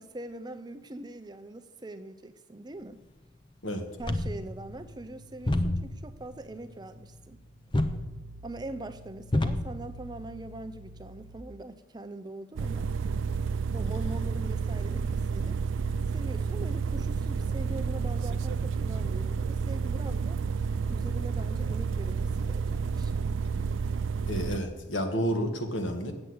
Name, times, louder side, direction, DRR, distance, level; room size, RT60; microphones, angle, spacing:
voice 1, 0.0-3.0 4.0-7.4 8.4-12.9 13.7-15.6 16.1-20.4 20.9-23.2, right 2 dB, 20° right, 10 dB, 0.5 m, -42 dB
sound 1, 4.0-11.4, left 1 dB, 25° left, 0.6 m, -33 dB
sound 2, 12.6-24.6, right 5 dB, 85° right, 0.4 m, -30 dB
voice 2, 24.3-26.1, equal, 80° left, 5 dB, 1.6 m, -30 dB
8.3 x 7.7 x 7.9 m, 1.2 s
head